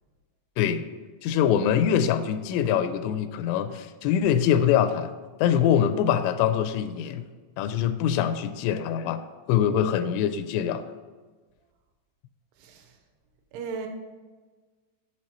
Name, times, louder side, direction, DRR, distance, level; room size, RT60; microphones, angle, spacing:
voice 1, 1.2-5.1 5.4-7.2 7.6-10.8, left 9 dB, 90° left, 10 dB, 3.0 m, -24 dB
voice 2, 12.6-12.9 13.5-13.9, right 5 dB, 80° right, 4 dB, 3.2 m, -35 dB
7.7 x 6.0 x 4.2 m, 1.4 s
omnidirectional pair, 5.5 m